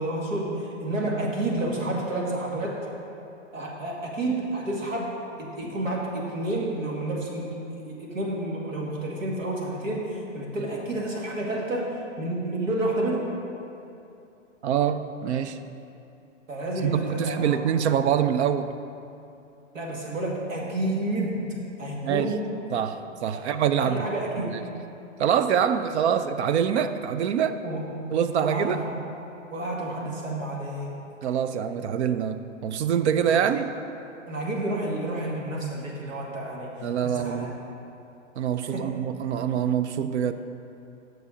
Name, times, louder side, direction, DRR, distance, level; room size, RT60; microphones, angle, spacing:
voice 1, 0.0-2.9 3.5-5.1 5.4-13.3 16.5-17.6 19.7-21.5 21.8-22.5 23.5-24.6 27.6-27.8 28.4-29.0 29.5-30.9 33.3-33.4 34.3-36.7 37.0-37.5 38.7-38.9, right 1 dB, 90° right, -3 dB, 1.9 m, -30 dB
voice 2, 14.6-15.6 16.8-18.7 22.0-22.3 22.7-24.1 24.4-24.6 25.2-27.6 28.1-28.8 31.2-33.7 36.8-37.5 38.4-40.3, right 8 dB, 60° right, 10 dB, 0.5 m, -25 dB
7.1 x 6.2 x 5.0 m, 2.8 s
hypercardioid pair, 135°, 38 cm